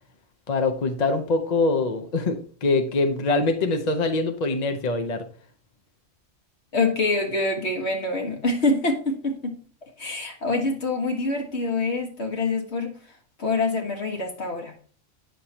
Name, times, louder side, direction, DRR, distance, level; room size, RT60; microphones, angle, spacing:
voice 1, 0.5-5.2, left 3 dB, 40° left, 6 dB, 0.7 m, -24 dB
voice 2, 6.7-9.6 10.0-13.0 13.4-14.7, left 3 dB, 55° left, 2 dB, 1.8 m, -25 dB
9.2 x 6.7 x 2.9 m, 0.43 s
omnidirectional pair, 1.3 m